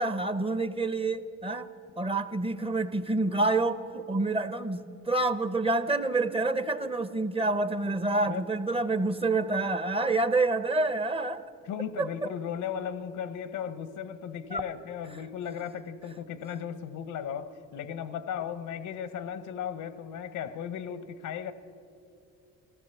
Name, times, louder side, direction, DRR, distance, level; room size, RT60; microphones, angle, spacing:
voice 1, 0.0-1.7 2.0-11.4 12.0-12.1 14.5-14.6, right 2 dB, 20° right, 0.6 m, -28 dB
voice 2, 11.6-21.5, left 8 dB, 85° left, 0.8 m, -36 dB
14.0 x 14.0 x 6.9 m
cardioid pair, 90°, 30 cm